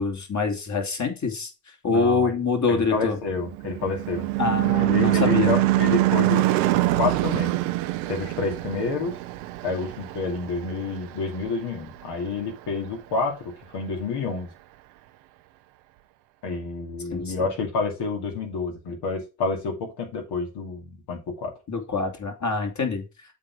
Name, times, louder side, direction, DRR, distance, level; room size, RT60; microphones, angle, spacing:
voice 1, 0.0-1.5 1.8-3.2 4.4-5.6 17.1-17.3 21.7-23.0, left 4 dB, 45° left, 4 dB, 2.7 m, -25 dB
voice 2, 1.9-2.4 2.7-4.3 4.7-6.5 7.0-7.5 8.1-9.1 9.6-14.5 16.4-21.5, left 4 dB, 70° left, 2 dB, 2.6 m, -29 dB
Car passing by / Truck / Engine, 3.1-11.8, right 17 dB, 90° right, 0.7 m, -24 dB
7.4 x 4.4 x 4.7 m, 0.28 s
hypercardioid pair, 55°, 41 cm